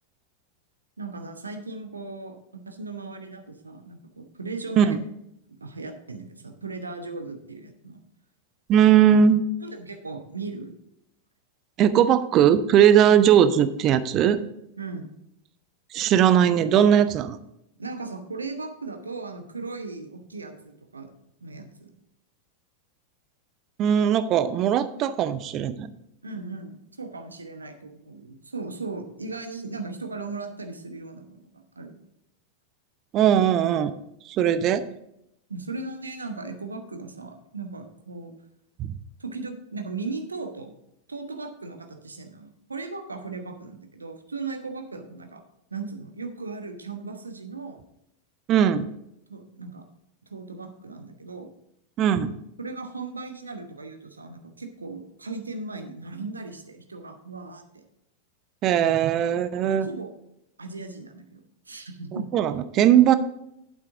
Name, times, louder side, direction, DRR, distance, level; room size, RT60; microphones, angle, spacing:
voice 1, 1.0-5.0 5.6-8.0 9.6-10.7 13.0-13.2 14.8-15.2 17.8-21.1 21.4-22.0 26.2-32.0 35.5-38.3 39.2-40.8 41.1-45.4 45.7-47.8 48.7-48.8 49.3-49.8 50.3-51.5 52.6-57.8 59.6-60.1 60.6-62.3, right 3 dB, 75° right, 6 dB, 1.0 m, -37 dB
voice 2, 8.7-9.4 11.8-14.4 15.9-17.4 23.8-25.9 33.1-33.9 34.3-34.8 38.8-39.0 48.5-48.9 52.0-52.3 58.6-59.9 62.1-63.1, right 9 dB, 35° right, 13 dB, 0.6 m, -19 dB
9.0 x 8.3 x 3.8 m, 0.79 s
figure-of-eight pair, 90°, 0 cm